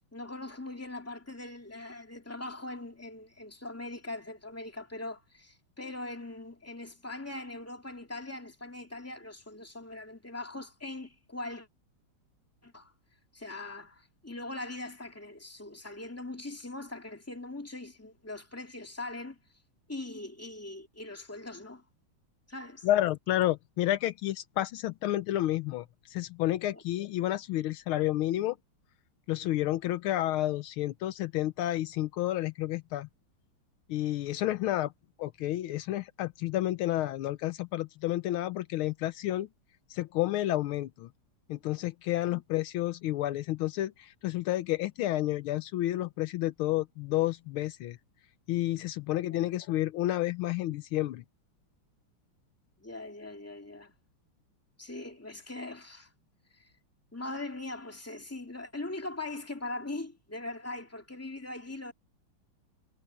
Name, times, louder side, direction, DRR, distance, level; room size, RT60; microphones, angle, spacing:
voice 1, 0.1-11.7 12.6-12.9 13.3-19.4 19.9-21.8 22.5-22.9 26.7-26.8 49.3-49.5 52.8-53.9 54.8-56.1 56.5-56.7 57.1-61.9, left 2 dB, 5° left, 2.2 m, -41 dB
voice 2, 22.8-25.8 26.1-28.6 29.3-33.1 33.9-34.9 35.2-39.5 39.9-41.1 41.5-48.0 48.5-51.2, left 14 dB, 80° left, 1.5 m, -30 dB
omnidirectional pair, 2.4 m